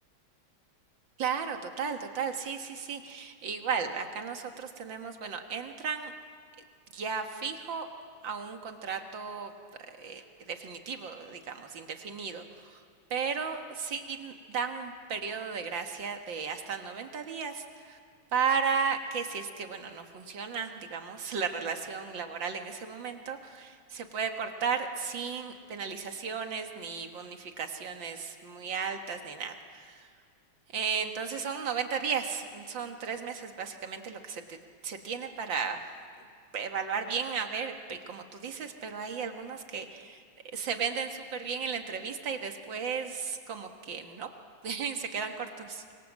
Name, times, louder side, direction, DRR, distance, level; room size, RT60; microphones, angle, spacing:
voice 1, 1.2-6.1 6.9-7.9 8.2-9.5 9.9-12.8 13.1-18.0 18.3-30.1 30.7-34.6 34.8-35.8 36.5-40.2 40.5-44.3 44.6-45.8, right 6 dB, 65° right, 5 dB, 2.3 m, -34 dB
25.0 x 24.0 x 7.5 m, 2.1 s
omnidirectional pair, 2.3 m